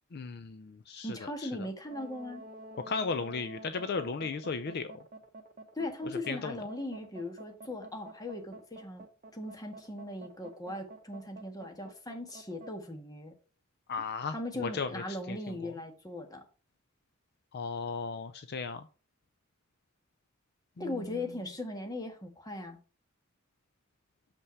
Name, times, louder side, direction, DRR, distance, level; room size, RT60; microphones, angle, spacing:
voice 1, 0.1-1.5 2.9-5.0 6.3-6.6 13.9-15.7 17.5-18.9 20.8-21.2, left 4 dB, 55° left, 0.5 m, -36 dB
voice 2, 1.0-2.4 5.8-9.0 9.3-13.3 14.3-16.5 20.8-22.8, left 1 dB, 20° left, 1.6 m, -39 dB
sound 1, 1.8-12.7, right 2 dB, 40° right, 0.9 m, -49 dB
6.9 x 5.6 x 4.5 m
head